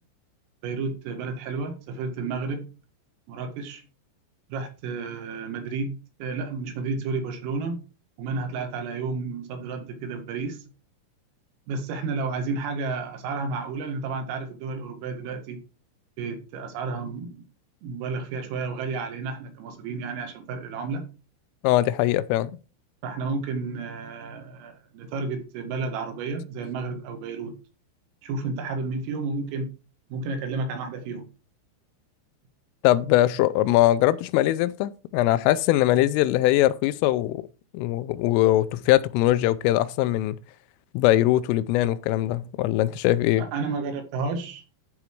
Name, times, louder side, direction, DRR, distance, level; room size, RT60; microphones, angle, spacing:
voice 1, 0.6-2.7 3.3-3.8 4.5-7.8 8.2-10.6 11.7-15.6 16.2-17.4 17.8-21.1 23.0-27.5 28.2-29.7 30.1-31.3 43.4-44.6, right 4 dB, 90° right, 4.3 m, -31 dB
voice 2, 21.6-22.5 32.8-37.4 37.7-40.4 40.9-43.5, left 15 dB, 85° left, 3.1 m, -21 dB
12.0 x 4.8 x 4.6 m
omnidirectional pair, 5.8 m